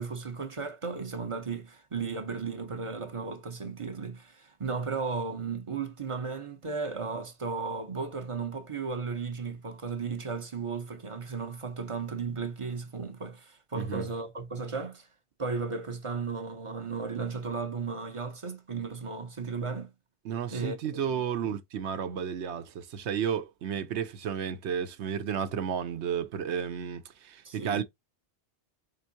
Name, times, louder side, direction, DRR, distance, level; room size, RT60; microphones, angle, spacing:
voice 1, 0.0-15.1 15.4-19.9 20.5-21.2 27.4-27.8, right 4 dB, 35° right, 0.6 m, -35 dB
voice 2, 20.2-27.8, right 8 dB, 80° right, 1.0 m, -32 dB
4.5 x 3.7 x 2.7 m
omnidirectional pair, 1.1 m